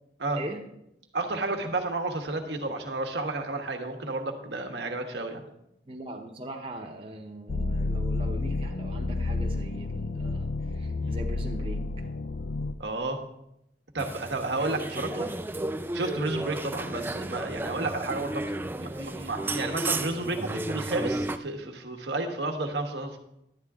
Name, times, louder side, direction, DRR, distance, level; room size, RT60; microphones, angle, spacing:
voice 1, 0.4-0.7 5.8-12.1 14.9-15.3, right 1 dB, 30° right, 1 dB, 0.8 m, -40 dB
voice 2, 1.1-5.4 11.0-11.1 12.8-13.2 13.9-15.3 15.9-23.2, right 2 dB, 80° right, 3 dB, 1.2 m, -31 dB
sound 1, 7.5-12.7, left 2 dB, 70° left, 0.5 m, -30 dB
sound 2, 14.0-21.4, right 2 dB, 10° right, 0.3 m, -33 dB
11.5 x 8.9 x 3.6 m, 0.80 s
head